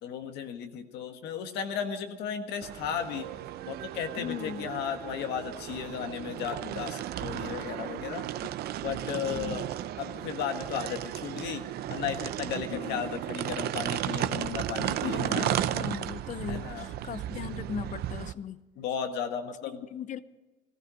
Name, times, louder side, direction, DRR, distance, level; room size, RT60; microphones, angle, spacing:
voice 1, 0.0-3.3 3.7-8.3 8.8-9.7 10.0-11.6 11.9-15.5 16.5-16.9 18.8-19.8, left 8 dB, 85° left, 7 dB, 1.6 m, -35 dB
sound 1, 2.6-18.3, right 12 dB, 70° right, 0.7 m, -34 dB
voice 2, 4.2-4.7 9.3-9.6 12.7-13.1 15.0-18.6 19.9-20.2, left 8 dB, 45° left, 16 dB, 0.7 m, -38 dB
15.5 x 14.5 x 5.0 m, 1.2 s
cardioid pair, 110°, 17 cm